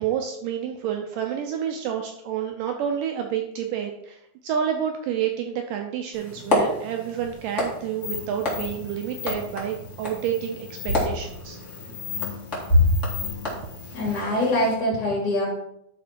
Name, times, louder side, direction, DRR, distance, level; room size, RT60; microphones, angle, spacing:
voice 1, 0.0-4.2 4.4-11.6, right 9 dB, 80° right, 4 dB, 1.9 m, -29 dB
sound 1, 6.1-14.7, left 1 dB, 25° left, 1.6 m, -28 dB
sound 2, 8.0-14.2, left 9 dB, 80° left, 1.8 m, -37 dB
voice 2, 13.9-15.5, left 1 dB, 50° left, -6 dB, 3.5 m, -24 dB
12.0 x 4.2 x 4.5 m, 0.77 s
omnidirectional pair, 4.5 m